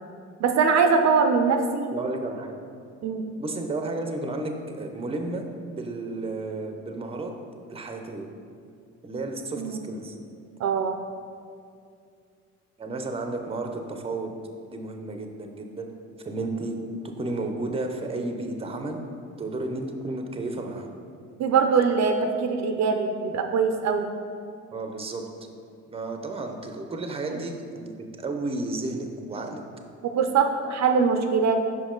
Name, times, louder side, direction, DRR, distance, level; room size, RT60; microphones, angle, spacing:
voice 1, 0.4-1.9 3.0-3.3 9.6-9.8 10.6-11.0 21.4-24.1 27.3-27.4 30.0-31.6, right 5 dB, 65° right, 5 dB, 0.5 m, -22 dB
voice 2, 1.9-2.6 3.4-5.4 5.8-7.3 7.7-8.3 9.0-10.2 12.8-14.3 14.7-15.9 16.2-16.8 17.2-19.0 19.4-20.9 24.7-25.2 25.9-29.6, right 2 dB, 20° right, 4 dB, 0.6 m, -32 dB
5.4 x 5.2 x 3.7 m, 2.3 s
cardioid pair, 90°, 30 cm